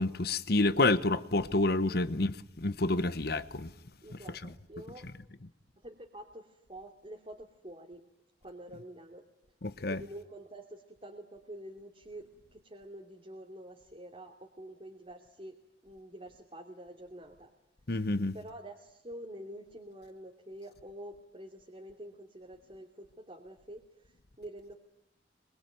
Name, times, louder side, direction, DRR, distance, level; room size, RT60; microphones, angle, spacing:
voice 1, 0.0-3.7 9.6-10.0 17.9-18.3, left 2 dB, 60° left, 1.1 m, -28 dB
voice 2, 1.8-2.2 4.0-5.1 5.8-8.0 8.4-9.2 9.9-15.6 15.8-17.5 18.3-24.8, right 1 dB, 30° right, 3.0 m, -47 dB
26.0 x 23.5 x 9.3 m
head